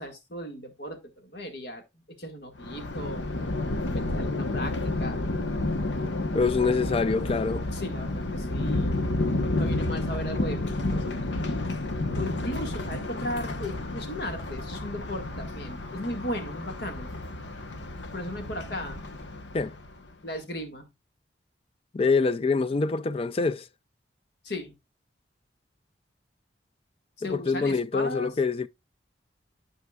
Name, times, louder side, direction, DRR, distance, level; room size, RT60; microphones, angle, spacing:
voice 1, 0.0-1.8 2.1-3.3 3.9-5.2 7.7-9.1 9.3-11.4 12.2-17.1 18.1-19.0 20.2-20.9 24.4-24.7 27.2-28.3, left 1 dB, 65° left, 1.7 m, -36 dB
Thunder, 2.6-20.0, left 2 dB, 80° left, 1.0 m, -31 dB
voice 2, 6.3-7.7 19.5-19.7 21.9-23.6 27.2-28.7, left 4 dB, 30° left, 0.4 m, -25 dB
12.0 x 5.1 x 2.3 m
head